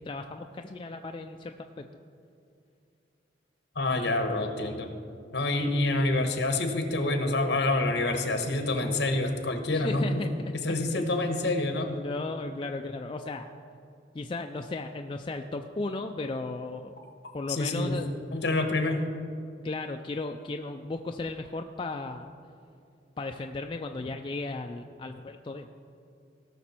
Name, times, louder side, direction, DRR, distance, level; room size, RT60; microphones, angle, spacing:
voice 1, 0.0-1.8 9.7-10.5 10.9-11.1 11.9-13.5 14.1-16.9 17.3-18.1 19.6-22.3 23.2-25.7, left 3 dB, 25° left, 4 dB, 0.3 m, -35 dB
voice 2, 3.7-4.9 5.3-10.2 10.6-11.9 17.5-19.0, left 2 dB, 65° left, 5 dB, 1.2 m, -27 dB
17.5 x 6.1 x 4.4 m, 2.5 s
head